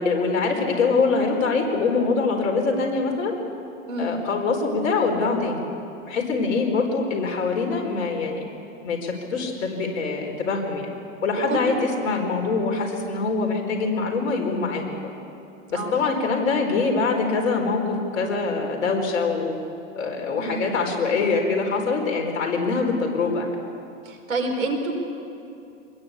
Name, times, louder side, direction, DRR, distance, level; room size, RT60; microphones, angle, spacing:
voice 1, 0.0-3.3 4.0-5.6 6.0-8.5 8.8-10.9 11.2-15.1 15.7-19.5 20.0-23.5, left 4 dB, 75° left, 2 dB, 4.8 m, -24 dB
voice 2, 20.4-20.7 24.1-24.9, right 2 dB, 90° right, 3 dB, 5.3 m, -27 dB
24.5 x 21.0 x 8.5 m, 2.7 s
hypercardioid pair, 120°, 40 cm